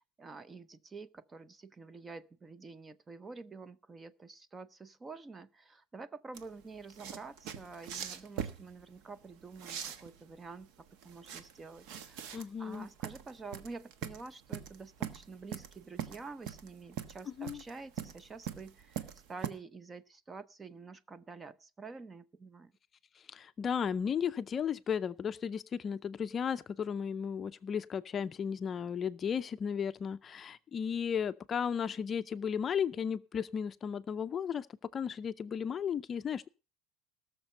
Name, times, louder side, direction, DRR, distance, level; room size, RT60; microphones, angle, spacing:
voice 1, 0.0-10.7 11.0-22.7, right 4 dB, 15° right, 0.6 m, -48 dB
sound 1, 6.3-19.5, right 9 dB, 65° right, 1.2 m, -42 dB
voice 2, 12.3-12.9 17.4-17.6 23.3-34.7 34.9-36.5, left 7 dB, 30° left, 0.5 m, -34 dB
18.0 x 6.6 x 5.4 m
cardioid pair, 145°, 0 cm